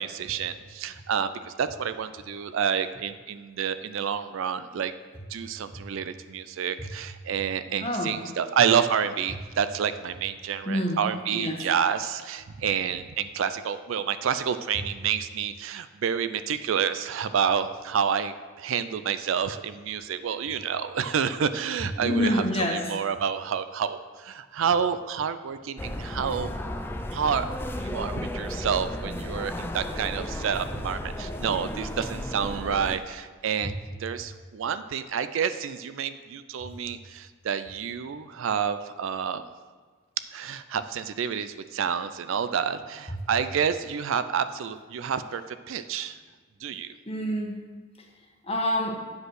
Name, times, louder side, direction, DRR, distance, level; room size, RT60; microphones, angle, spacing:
voice 1, 0.0-4.9 5.3-26.5 27.1-27.5 27.7-33.7 34.0-39.5 40.3-46.2 46.6-46.9, right 7 dB, 65° right, 12 dB, 0.4 m, -29 dB
voice 2, 7.8-8.1 10.7-11.0 11.3-11.6 22.0-22.8 47.1-47.5 48.5-49.0, left 1 dB, 25° left, 1 dB, 1.1 m, -26 dB
sound 1, 25.8-33.0, left 1 dB, 10° left, 0.3 m, -34 dB
8.2 x 5.1 x 6.3 m, 1.5 s
head